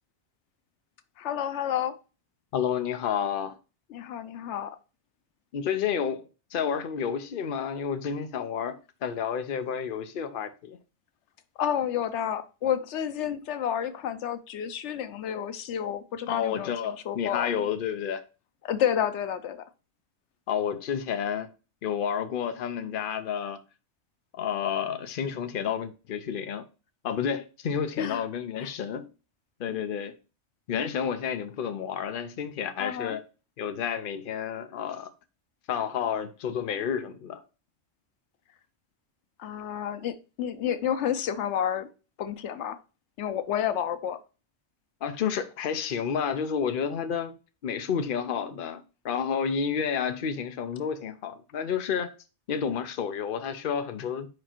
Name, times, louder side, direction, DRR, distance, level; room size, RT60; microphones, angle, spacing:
voice 1, 1.2-1.9 3.9-4.7 11.6-16.7 17.1-17.5 18.6-19.6 28.0-28.2 28.6-28.7 32.8-33.2 39.4-41.9 42.2-42.8 43.2-44.2, left 9 dB, 90° left, 1.0 m, -30 dB
voice 2, 2.5-3.6 5.5-10.8 16.3-18.2 20.5-21.5 21.8-23.6 24.4-26.6 27.0-29.1 29.6-30.1 30.7-33.2 33.6-35.1 35.7-37.4 45.0-47.4 47.6-52.1 52.5-54.3, left 7 dB, 55° left, 0.8 m, -30 dB
5.1 x 4.8 x 4.4 m
omnidirectional pair, 1.1 m